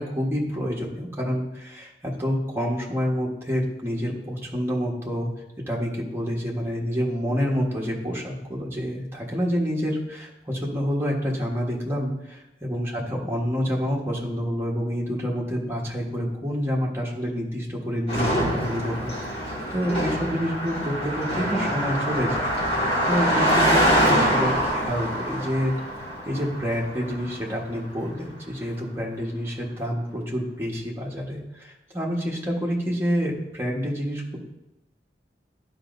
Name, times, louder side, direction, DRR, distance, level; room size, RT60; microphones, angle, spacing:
voice 1, 0.0-5.3 5.7-25.7 26.2-34.4, equal, 15° right, -3 dB, 1.3 m, -28 dB
Car passing by, 18.1-27.6, equal, 65° left, 2.4 m, -24 dB
11.5 x 5.0 x 2.6 m, 0.92 s
head